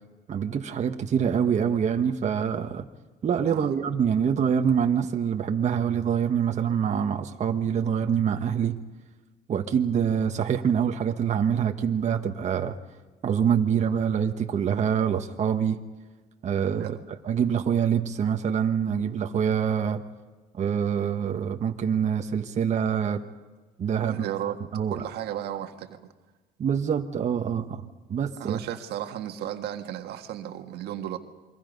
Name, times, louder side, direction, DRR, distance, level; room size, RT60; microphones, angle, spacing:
voice 1, 0.3-2.8 3.2-8.8 9.5-12.7 13.2-15.8 16.4-16.9 17.2-20.0 20.6-23.2 23.8-24.2 24.7-25.0 26.6-28.6, right 7 dB, 45° right, 5 dB, 1.4 m, -25 dB
voice 2, 24.0-24.6 24.9-26.0 28.4-31.2, right 11 dB, 75° right, 6 dB, 1.7 m, -34 dB
28.5 x 24.0 x 5.4 m, 1.2 s
cardioid pair, 110°, 17 cm